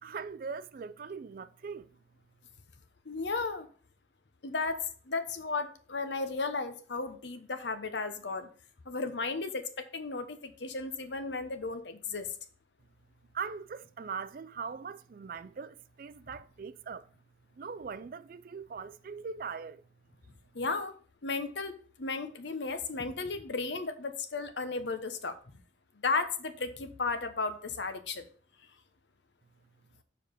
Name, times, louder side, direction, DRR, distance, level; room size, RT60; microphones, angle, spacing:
voice 1, 0.0-1.9 13.3-17.1 17.6-19.8, right 5 dB, 50° right, 0.4 m, -41 dB
voice 2, 3.1-3.7 4.4-8.5 8.9-12.3 20.5-20.9 21.2-25.3 26.0-28.2, left 4 dB, 70° left, 1.0 m, -34 dB
6.8 x 4.9 x 5.3 m
head